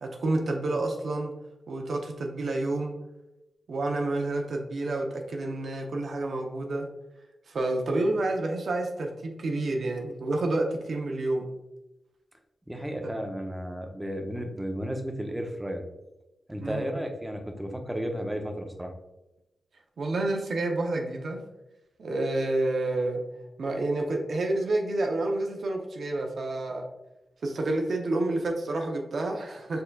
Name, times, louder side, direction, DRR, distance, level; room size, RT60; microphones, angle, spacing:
voice 1, 0.0-1.3 1.7-2.9 3.7-6.9 7.5-11.5 13.0-13.1 16.6-17.0 20.0-21.4 22.0-23.2 23.6-26.8 27.4-29.8, right 2 dB, 70° right, 1 dB, 0.6 m, -29 dB
voice 2, 12.7-15.8 16.5-18.9, equal, 10° right, 4 dB, 0.7 m, -33 dB
4.4 x 3.8 x 2.2 m, 0.96 s
cardioid pair, 55°, 0 cm